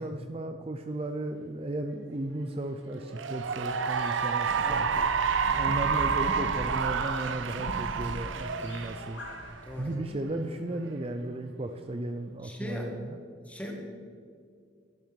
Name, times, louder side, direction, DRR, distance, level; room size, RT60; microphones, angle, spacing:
voice 1, 0.0-5.0 5.6-9.2 9.8-13.2, right 1 dB, 30° right, 7 dB, 0.5 m, -35 dB
Cheering / Applause, 3.0-9.7, right 6 dB, 85° right, 0.6 m, -29 dB
sound 1, 3.3-9.9, equal, 80° left, 1.9 m, -41 dB
voice 2, 4.5-4.9 5.4-5.8 9.6-10.2 12.4-12.9 13.5-13.7, equal, 10° left, 0 dB, 1.9 m, -40 dB
12.0 x 10.5 x 5.3 m, 2.3 s
head